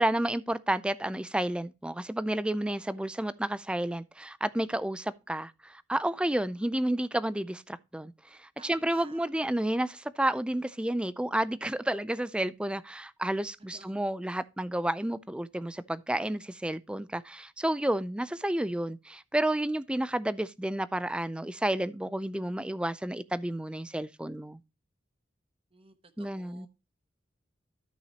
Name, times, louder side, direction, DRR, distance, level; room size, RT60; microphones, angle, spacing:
voice 1, 0.0-24.6 26.2-26.7, right 1 dB, 5° right, 0.3 m, -31 dB
voice 2, 8.6-9.3 13.6-14.0 25.7-26.7, right 3 dB, 30° right, 1.0 m, -54 dB
13.0 x 6.0 x 2.8 m
head